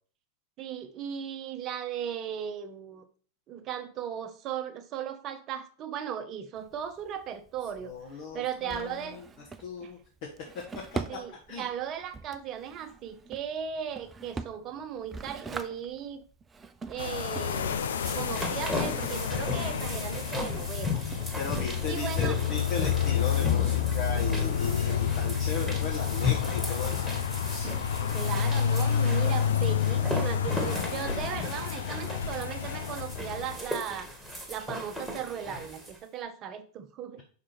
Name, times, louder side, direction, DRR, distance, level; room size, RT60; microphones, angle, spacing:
voice 1, 0.6-3.1 3.5-9.2 9.8-9.9 11.1-16.2 16.9-17.8 18.1-21.1 21.8-22.4 23.6-23.7 28.1-34.1 34.5-37.2, right 9 dB, 35° right, 0.9 m, -37 dB
Drawer open or close, 6.6-21.7, right 4 dB, 15° right, 0.5 m, -44 dB
voice 2, 7.8-9.2 9.6-10.3 10.9-11.7 21.4-27.1 27.4-27.7, left 4 dB, 50° left, 1.2 m, -37 dB
sound 1, 17.0-33.6, left 8 dB, 65° left, 0.6 m, -29 dB
sound 2, 17.6-36.0, left 3 dB, ahead, 1.6 m, -36 dB
5.8 x 5.0 x 4.5 m
figure-of-eight pair, 90°, 0 cm